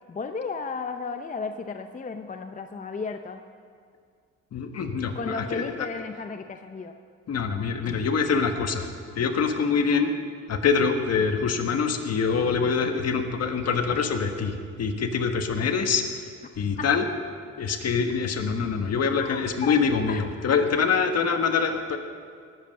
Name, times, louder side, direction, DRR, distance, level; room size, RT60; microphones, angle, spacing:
voice 1, 0.1-3.4 5.1-6.9 16.8-16.9 19.2-19.8 20.1-20.2, left 4 dB, 25° left, 6 dB, 0.7 m, -34 dB
voice 2, 4.5-5.9 7.3-8.9 9.1-10.1 10.5-16.0 16.6-17.1 17.6-22.0, left 5 dB, 55° left, 6 dB, 1.5 m, -25 dB
18.5 x 8.0 x 6.5 m, 2.1 s
cardioid pair, 90°, 30 cm